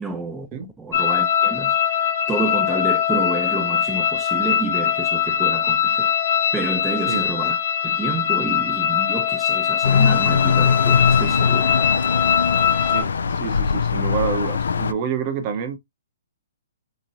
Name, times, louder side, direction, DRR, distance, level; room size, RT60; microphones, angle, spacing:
voice 1, 0.0-0.5 0.8-1.8 2.3-6.1 6.5-7.6 7.8-11.8, right 3 dB, 10° right, 0.6 m, -29 dB
sound 1, 0.9-13.0, left 9 dB, 70° left, 1.0 m, -21 dB
sound 2, 9.8-14.9, left 5 dB, 85° left, 0.3 m, -21 dB
voice 2, 12.8-15.8, right 6 dB, 35° right, 0.8 m, -28 dB
3.6 x 3.0 x 2.6 m
hypercardioid pair, 150°, 0 cm